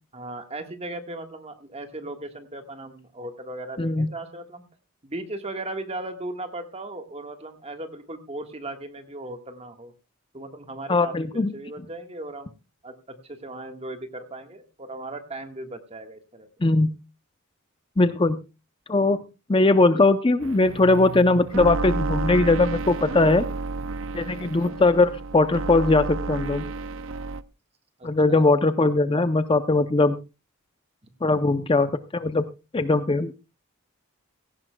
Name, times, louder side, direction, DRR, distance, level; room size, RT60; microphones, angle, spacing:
voice 1, 0.1-4.6 5.0-9.9 10.3-12.5 12.8-16.5 24.4-24.8 28.0-28.4, right 2 dB, 30° right, 7 dB, 1.5 m, -37 dB
voice 2, 3.8-4.1 10.9-11.5 16.6-16.9 18.0-18.4 18.9-19.2 19.5-23.5 24.1-26.6 28.0-30.2 31.2-32.4 32.7-33.3, left 2 dB, 25° left, 11 dB, 0.5 m, -20 dB
sound 1, 20.4-27.4, right 3 dB, 60° right, 0.6 m, -31 dB
17.0 x 15.5 x 2.2 m, 0.28 s
head